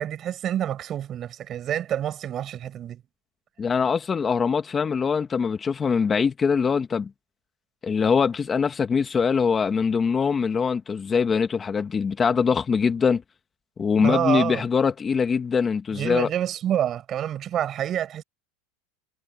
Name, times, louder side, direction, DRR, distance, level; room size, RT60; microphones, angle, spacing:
voice 1, 0.0-3.0 13.9-14.6 15.9-18.2, right 10 dB, 35° right, 6.3 m, -27 dB
voice 2, 3.6-7.1 7.8-13.2 13.8-16.3, left 6 dB, 20° left, 2.1 m, -23 dB
supercardioid pair, 125°, 0 cm